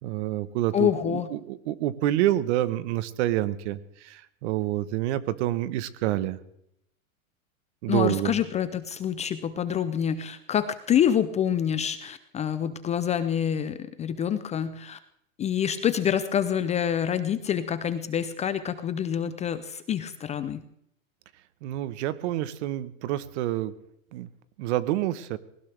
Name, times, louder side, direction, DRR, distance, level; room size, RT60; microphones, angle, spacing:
voice 1, 0.0-6.4 7.8-8.3 21.6-23.7 24.1-24.3 24.6-25.4, right 14 dB, 55° right, 15 dB, 1.2 m, -28 dB
voice 2, 0.7-1.3 7.9-15.0 15.4-20.6, left 9 dB, 15° left, 12 dB, 0.5 m, -27 dB
20.0 x 18.0 x 3.5 m, 0.75 s
hypercardioid pair, 130°, 41 cm